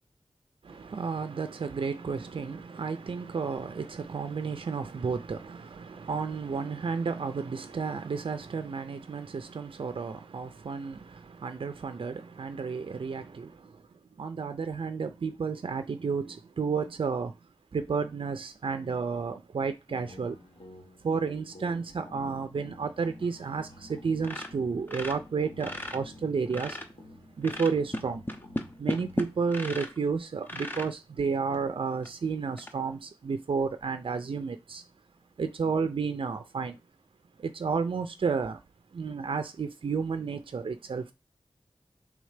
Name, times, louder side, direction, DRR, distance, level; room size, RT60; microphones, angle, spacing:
voice 1, 0.6-13.8 14.2-17.3 17.7-20.4 21.0-26.8 27.4-28.2 28.8-34.8 35.4-36.8 37.4-38.6 38.9-41.1, right 5 dB, 65° right, 0.4 m, -32 dB
sound 1, 19.9-29.4, left 1 dB, 70° left, 1.2 m, -50 dB
sound 2, 24.2-26.0 26.3-27.0 27.4-30.0 30.5-30.9 31.5-31.6 32.0-32.1 32.6-32.7, left 1 dB, 20° left, 0.7 m, -35 dB
3.4 x 3.2 x 4.9 m
wide cardioid pair, 85°, 9 cm